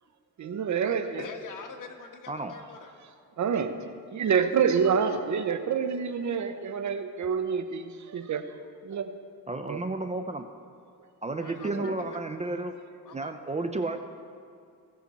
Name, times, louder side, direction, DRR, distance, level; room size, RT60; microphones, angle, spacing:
voice 1, 0.4-1.2 3.4-3.7 4.1-8.5 8.8-9.1 9.7-9.8 11.4-11.9, right 6 dB, 55° right, 8 dB, 0.9 m, -27 dB
voice 2, 1.2-2.9 5.1-5.2 11.4-12.2 13.0-13.3, left 5 dB, 60° left, 4 dB, 1.2 m, -44 dB
voice 3, 9.5-10.5 11.2-12.8 13.1-14.0, right 2 dB, 20° right, 7 dB, 0.5 m, -32 dB
17.5 x 6.0 x 4.1 m, 2.4 s
cardioid pair, 90°, 35 cm